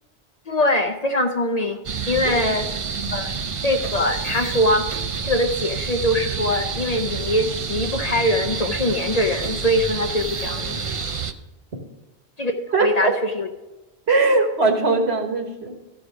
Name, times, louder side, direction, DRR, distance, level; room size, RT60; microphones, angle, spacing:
voice 1, 0.5-1.8 2.1-2.7 3.1-3.3 3.6-4.9 5.2-10.8 12.4-13.5, left 1 dB, 45° left, 5 dB, 0.7 m, -22 dB
sound 1, 1.8-11.3, right 5 dB, 45° right, 0.4 m, -28 dB
voice 2, 12.7-13.1 14.1-15.7, right 3 dB, 70° right, 4 dB, 1.6 m, -20 dB
13.0 x 4.9 x 6.2 m, 1.1 s
omnidirectional pair, 1.1 m